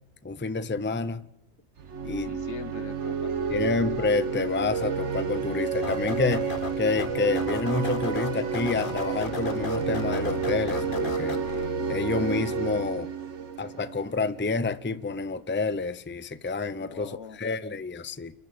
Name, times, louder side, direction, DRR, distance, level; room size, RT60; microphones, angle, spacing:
voice 1, 0.2-1.2 2.0-2.3 3.5-11.4 11.9-13.1 13.6-17.1 17.4-18.3, left 4 dB, 10° left, 0.6 m, -28 dB
sound 1, 1.8-14.4, right 5 dB, 80° right, 1.5 m, -30 dB
voice 2, 2.2-3.6 16.8-17.4, left 5 dB, 75° left, 1.3 m, -42 dB
sound 2, 5.8-11.7, left 4 dB, 50° left, 1.6 m, -36 dB
28.5 x 12.0 x 8.8 m
omnidirectional pair, 1.2 m